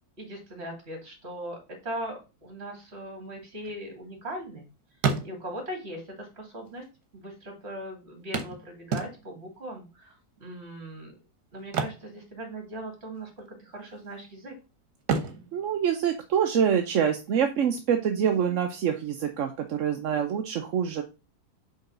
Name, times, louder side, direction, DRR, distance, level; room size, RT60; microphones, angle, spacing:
voice 1, 0.2-4.7 5.2-6.8 7.1-10.1 10.4-11.1 11.5-14.5, right 1 dB, 40° right, 2 dB, 2.7 m, -39 dB
sound 1, 3.3-4.6 4.9-5.8 6.7-6.8 7.0-7.1 8.3-9.5 11.6-12.9 13.1-13.4 13.9-14.5 15.0-16.8 18.7-18.8 19.3-19.4, right 5 dB, 75° right, 1.5 m, -32 dB
voice 2, 15.5-21.0, right 8 dB, 60° right, 5 dB, 0.9 m, -26 dB
5.5 x 3.9 x 6.0 m, 0.29 s
omnidirectional pair, 1.7 m